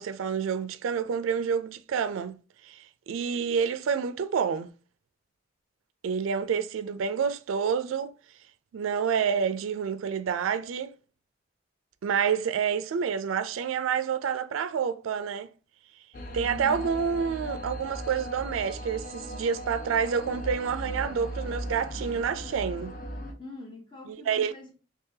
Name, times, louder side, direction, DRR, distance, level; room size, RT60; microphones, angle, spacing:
voice 1, 0.0-2.3 2.6-4.7 6.0-8.1 8.7-11.0 12.0-15.5 16.3-22.9 24.1-24.5, right 7 dB, 85° right, 0.3 m, -28 dB
sound 1, 16.1-23.3, equal, 45° left, 0.5 m, -38 dB
voice 2, 16.4-16.9 23.4-24.7, left 2 dB, 25° left, 0.8 m, -43 dB
3.7 x 2.9 x 2.7 m
head